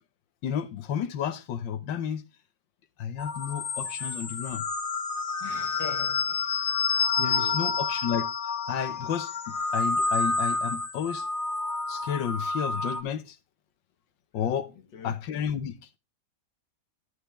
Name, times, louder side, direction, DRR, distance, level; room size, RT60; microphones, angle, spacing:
voice 1, 0.4-2.2 3.0-4.6 7.2-8.3 8.7-11.3 11.9-13.4 14.3-14.7 15.0-15.7, left 8 dB, 90° left, 1.6 m, -31 dB
sound 1, 3.2-13.0, left 4 dB, 55° left, 1.3 m, -29 dB
voice 2, 5.4-6.6 7.1-7.8 14.7-15.1, left 5 dB, 75° left, 2.3 m, -42 dB
12.0 x 8.0 x 3.4 m
omnidirectional pair, 2.0 m